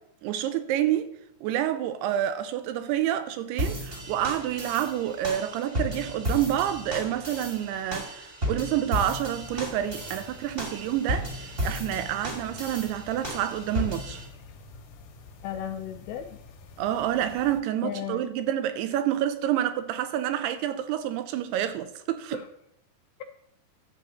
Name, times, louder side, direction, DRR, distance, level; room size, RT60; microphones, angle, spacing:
voice 1, 0.2-1.1 1.4-14.2 16.8-22.4, right 11 dB, 80° right, 2.7 m, -28 dB
sound 1, 3.6-14.2, equal, 25° right, 1.2 m, -34 dB
sound 2, 9.3-17.6, left 3 dB, 65° left, 2.0 m, -49 dB
voice 2, 15.4-16.4 17.8-18.3 22.3-22.4, left 9 dB, 85° left, 2.2 m, -35 dB
11.5 x 4.0 x 7.5 m
omnidirectional pair, 4.8 m